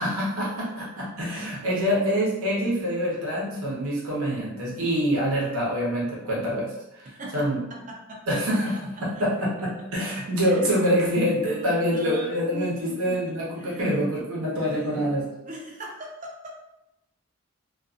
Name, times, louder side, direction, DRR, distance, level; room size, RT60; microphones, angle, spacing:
voice 1, 0.0-7.6 8.3-15.3, equal, 75° right, -5 dB, 1.0 m, -26 dB
voice 2, 7.1-8.4 9.0-9.2 10.4-11.0 11.3-14.1 14.5-16.5, right 1 dB, 35° right, -1 dB, 0.5 m, -40 dB
2.6 x 2.5 x 2.4 m, 0.88 s
head